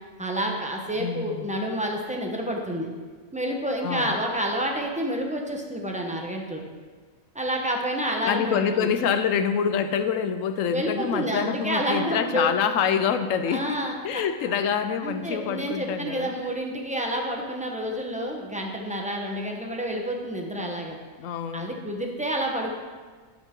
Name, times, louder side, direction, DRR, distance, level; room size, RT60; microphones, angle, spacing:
voice 1, 0.2-2.9 3.3-6.6 7.3-8.9 10.7-12.5 13.5-14.2 15.0-21.0 21.5-22.7, right 1 dB, 5° right, 0 dB, 0.8 m, -29 dB
voice 2, 1.0-1.5 3.8-4.1 8.2-16.3 21.2-21.8, left 7 dB, 75° left, 9 dB, 1.0 m, -26 dB
12.0 x 6.3 x 3.7 m, 1.5 s
omnidirectional pair, 1.4 m